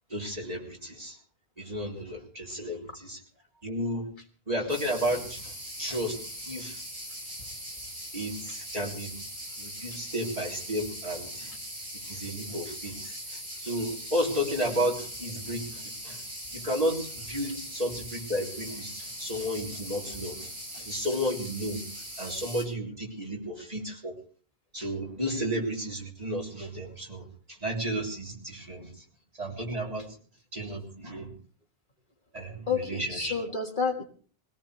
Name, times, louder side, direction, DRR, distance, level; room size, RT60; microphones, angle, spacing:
voice 1, 0.1-1.2 1.6-3.2 3.6-4.1 4.5-6.8 8.1-9.2 9.6-11.6 11.9-16.2 16.5-21.9 22.2-24.2 24.7-29.0 29.4-30.2 30.5-31.3 32.3-33.4, equal, 40° right, -2 dB, 3.9 m, -33 dB
sound 1, 4.7-22.6, equal, 80° right, 7.7 m, -40 dB
voice 2, 32.7-34.0, left 5 dB, 50° left, 3 dB, 1.9 m, -30 dB
22.0 x 17.5 x 3.3 m, 0.43 s
omnidirectional pair, 1.0 m